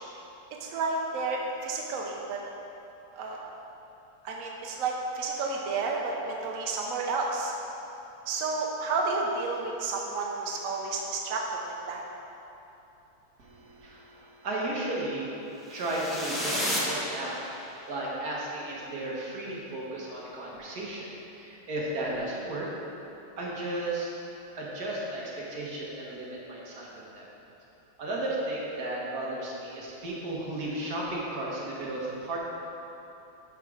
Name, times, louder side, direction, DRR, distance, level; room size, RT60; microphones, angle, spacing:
voice 1, 0.6-2.4 3.1-3.4 4.2-7.5 8.3-12.0, right 3 dB, 75° right, -1 dB, 0.7 m, -31 dB
voice 2, 13.4-17.4 17.9-22.7 23.4-24.1 24.6-27.3 28.0-32.4, right 1 dB, 50° right, -5 dB, 1.6 m, -34 dB
sound 1, 15.7-17.9, equal, ahead, 0.6 m, -32 dB
11.0 x 3.7 x 4.8 m, 2.9 s
omnidirectional pair, 2.3 m